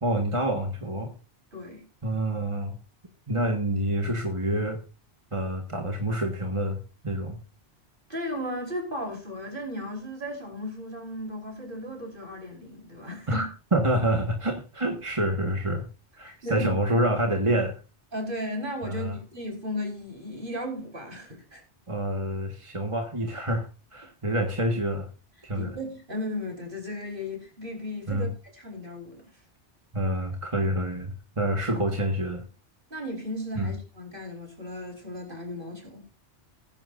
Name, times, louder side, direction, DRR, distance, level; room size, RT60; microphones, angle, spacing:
voice 1, 0.0-1.1 2.0-2.7 3.3-4.8 5.3-6.8 7.0-7.4 13.3-15.8 16.2-17.8 18.9-19.1 21.9-25.1 25.4-25.7 28.1-28.3 29.9-32.4 33.6-33.7, right 1 dB, 30° right, 1.6 m, -27 dB
voice 2, 1.5-1.8 8.1-13.5 16.2-17.0 18.1-21.6 25.5-29.3 32.9-36.0, left 1 dB, 50° right, 4.9 m, -35 dB
20.5 x 10.5 x 2.6 m
omnidirectional pair, 1.2 m